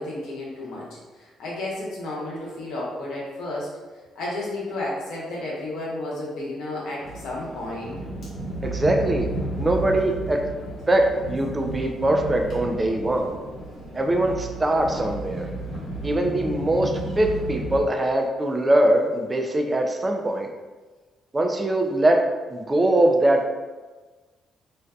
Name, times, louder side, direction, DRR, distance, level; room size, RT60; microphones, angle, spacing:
voice 1, 0.0-3.7 4.2-8.0, left 2 dB, 85° left, -5 dB, 0.7 m, -32 dB
sound 1, 7.0-17.8, right 2 dB, 50° left, 1.1 m, -33 dB
voice 2, 8.6-9.3 9.6-10.4 10.9-13.4 13.9-15.5 16.0-16.9 17.2-20.5 21.3-22.2 22.5-23.5, right 1 dB, 25° right, 2 dB, 0.3 m, -22 dB
2.5 x 2.2 x 2.3 m, 1.3 s
cardioid pair, 90°, 0 cm